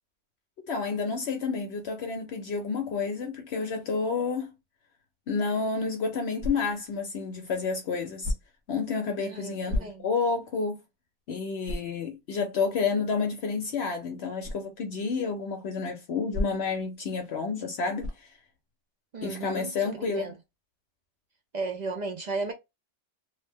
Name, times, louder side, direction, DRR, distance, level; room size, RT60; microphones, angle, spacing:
voice 1, 0.6-4.5 5.3-8.3 8.7-10.8 11.3-18.3 19.2-20.3, left 4 dB, 65° left, 0.8 m, -30 dB
sound 1, 6.4-6.9 8.2-8.7 9.7-10.3 10.8-10.9 11.6-12.0 14.4-14.7 16.3-16.8 18.0-18.3, left 2 dB, 75° right, 1.2 m, -33 dB
voice 2, 9.2-10.1 19.1-20.4 21.5-22.5, right 3 dB, 55° right, 0.5 m, -35 dB
2.7 x 2.0 x 3.4 m
omnidirectional pair, 1.2 m